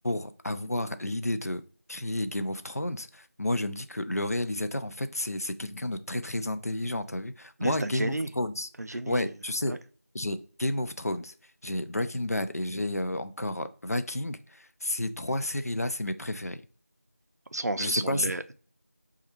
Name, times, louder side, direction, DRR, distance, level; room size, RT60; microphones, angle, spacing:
voice 1, 0.0-1.6 1.9-9.7 10.1-11.3 11.6-16.6 17.8-18.3, left 1 dB, 70° left, 0.4 m, -31 dB
voice 2, 7.6-8.3 8.8-9.3 9.7-9.8 17.5-18.5, right 2 dB, 85° right, 0.4 m, -32 dB
5.5 x 2.3 x 2.9 m
figure-of-eight pair, 175°, 9 cm